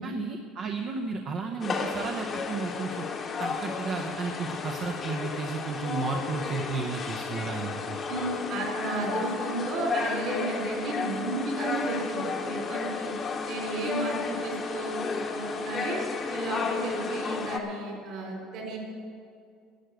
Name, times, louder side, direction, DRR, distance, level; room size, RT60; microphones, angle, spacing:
voice 1, 0.0-3.1 3.4-8.0, right 4 dB, 35° right, 3 dB, 0.7 m, -33 dB
sound 1, 1.6-17.6, left 4 dB, 25° left, 1.0 m, -33 dB
voice 2, 8.1-13.1 13.4-16.0 16.3-18.8, right 2 dB, 55° right, 0 dB, 3.7 m, -33 dB
11.5 x 7.9 x 8.9 m, 2.3 s
cardioid pair, 170°, 0 cm